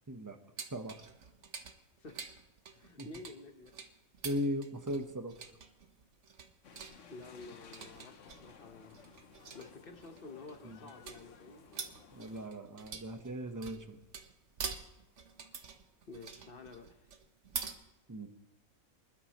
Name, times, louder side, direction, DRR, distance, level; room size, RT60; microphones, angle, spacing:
sound 1, 0.6-17.7, right 6 dB, 60° right, 1.4 m, -47 dB
voice 1, 2.7-3.7 7.1-9.0 9.5-11.7 16.1-17.1, left 3 dB, 45° left, 6 dB, 1.3 m, -50 dB
voice 2, 4.2-5.3 10.6-10.8 12.1-14.0 18.1-18.3, equal, 15° right, 6 dB, 0.9 m, -38 dB
sound 2, 6.6-12.5, left 6 dB, 65° left, 1.2 m, -57 dB
25.5 x 12.0 x 3.1 m, 0.99 s
omnidirectional pair, 1.4 m